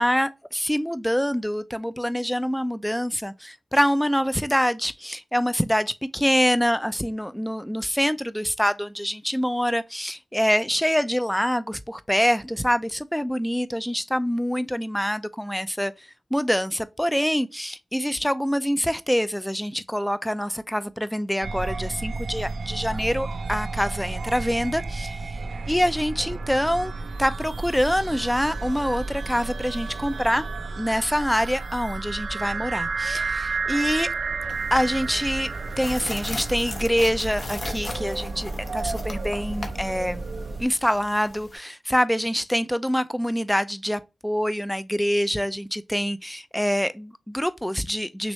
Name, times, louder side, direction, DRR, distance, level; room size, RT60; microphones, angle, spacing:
voice 1, 0.0-25.2 25.7-26.9 27.2-30.4 30.8-34.1 34.7-35.5 35.8-40.3 40.6-48.3, equal, 5° left, 0.5 m, -25 dB
sound 1, 21.4-40.6, right 3 dB, 75° right, 0.6 m, -32 dB
sound 2, 34.5-41.6, left 2 dB, 55° left, 1.1 m, -39 dB
6.2 x 2.6 x 3.2 m
cardioid pair, 60°, 0 cm